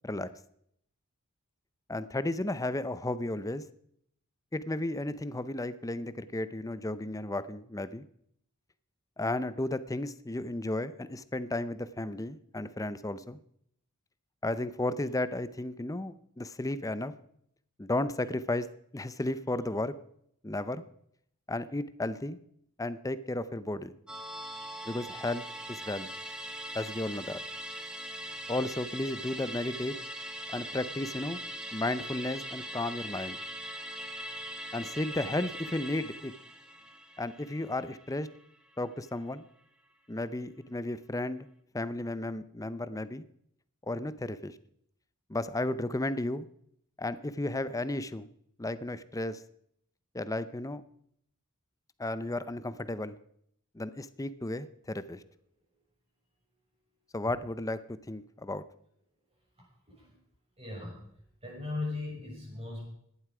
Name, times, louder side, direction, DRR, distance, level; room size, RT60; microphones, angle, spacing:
voice 1, 1.9-3.6 4.5-8.0 9.2-13.4 14.4-17.1 17.8-18.7 18.9-19.9 20.4-20.8 21.5-22.4 22.8-23.9 24.8-26.1 26.7-27.4 28.5-30.0 30.5-31.4 31.7-33.4 34.7-36.3 37.2-38.3 38.8-39.5 40.1-41.5 41.7-43.2 43.8-44.5 45.3-46.5 47.0-48.3 48.6-49.4 50.1-50.8 52.0-53.2 53.7-55.2 57.1-58.6, left 2 dB, 15° left, 14 dB, 0.6 m, -33 dB
Musical instrument, 24.1-38.8 39.1-39.2, right 1 dB, 5° right, 1.3 m, -41 dB
voice 2, 60.6-61.0 61.4-62.9, left 3 dB, 25° right, -2 dB, 6.3 m, -38 dB
17.0 x 11.5 x 4.9 m, 0.70 s
head